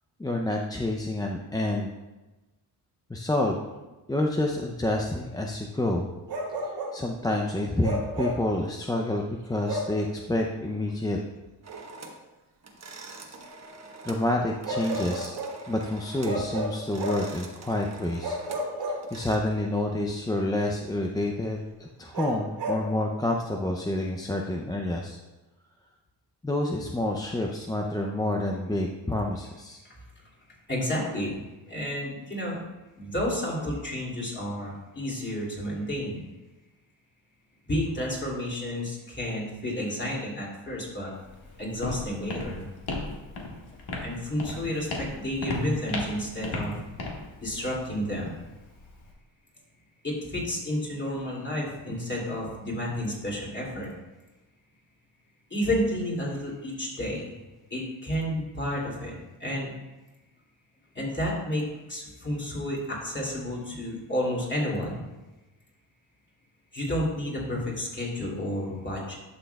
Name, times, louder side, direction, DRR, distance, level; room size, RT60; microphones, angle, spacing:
voice 1, 0.2-1.9 3.1-3.6 4.1-6.1 6.6-11.2 14.0-15.3 15.7-18.4 19.1-25.2 26.4-29.8, left 1 dB, 10° left, 1 dB, 0.5 m, -28 dB
Bark, 6.3-7.0 7.8-8.5 9.6-10.0 11.7-11.9 14.6-15.6 16.2-17.3 18.2-19.5 22.1-22.9, right 1 dB, 70° right, 2.3 m, -32 dB
sound 1, 11.6-12.2 12.6-14.3 14.5-16.4 16.7-19.4, right 3 dB, 35° right, 1.1 m, -45 dB
voice 2, 30.7-31.4 31.7-32.6 33.0-36.2 37.7-41.1 41.6-42.7 44.0-46.8 47.4-48.4 50.0-53.9 55.5-57.3 57.7-59.7 60.9-65.1 66.7-69.1, left 1 dB, 25° left, -3 dB, 2.6 m, -31 dB
Walk footsteps, 41.1-49.1, left 2 dB, 60° left, 1.7 m, -36 dB
11.0 x 6.3 x 2.3 m, 1.1 s
cardioid pair, 95°, 43 cm